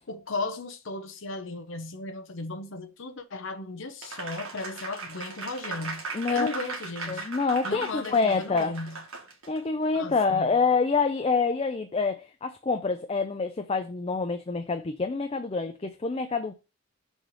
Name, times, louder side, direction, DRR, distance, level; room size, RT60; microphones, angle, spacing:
voice 1, 0.1-7.3 7.6-9.0 10.0-10.6, left 3 dB, 65° left, 1.0 m, -36 dB
Applause, 4.0-9.6, right 3 dB, 90° right, 1.5 m, -38 dB
voice 2, 6.1-6.5 7.1-8.8 9.5-16.5, left 4 dB, 30° left, 0.4 m, -26 dB
6.3 x 3.3 x 5.5 m
head